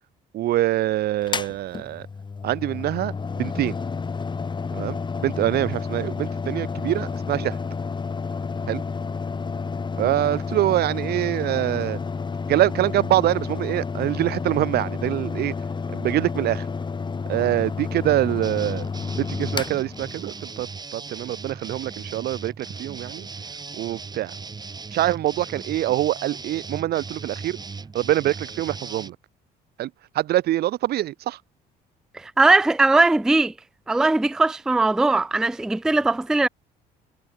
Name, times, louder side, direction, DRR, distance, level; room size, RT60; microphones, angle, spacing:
voice 1, 0.3-2.1 2.4-3.8 4.7-7.6 8.7-8.8 10.0-12.0 12.5-15.5 15.9-16.6 17.3-18.9 19.2-20.7 20.9-23.3 23.8-24.3 24.9-27.6 27.9-29.2 29.8-29.9 30.2-31.4, right 14 dB, 70° right, 1.8 m, -24 dB
Mechanical fan, 1.2-20.6, left 5 dB, 25° left, 4.3 m, -30 dB
sound 1, 18.4-29.1, right 4 dB, 25° right, 3.3 m, -38 dB
voice 2, 32.1-33.5 33.9-36.5, right 2 dB, 5° right, 0.4 m, -19 dB
cardioid pair, 110°, 17 cm